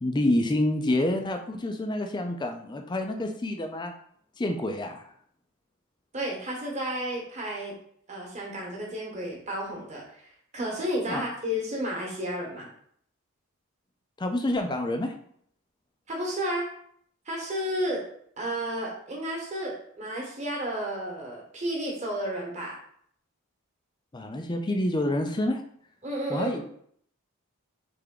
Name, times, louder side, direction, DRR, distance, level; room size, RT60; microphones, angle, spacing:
voice 1, 0.0-3.9 4.4-5.1 11.1-11.2 14.2-15.1 24.1-25.6 26.3-26.6, left 1 dB, 20° left, 5 dB, 0.4 m, -28 dB
voice 2, 6.1-7.7 8.1-12.7 16.1-16.7 17.2-18.0 18.4-22.8 26.0-26.6, equal, 30° right, -2 dB, 1.1 m, -32 dB
3.5 x 3.4 x 3.7 m, 0.65 s
head